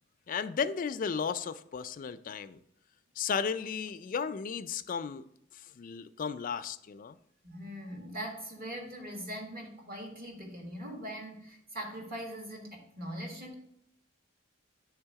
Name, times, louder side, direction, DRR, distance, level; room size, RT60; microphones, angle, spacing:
voice 1, 0.3-2.6 3.2-5.2 5.5-7.2, left 6 dB, 45° left, 0.3 m, -34 dB
voice 2, 7.4-13.5, equal, 50° right, 1.6 m, -41 dB
8.8 x 3.4 x 4.6 m
head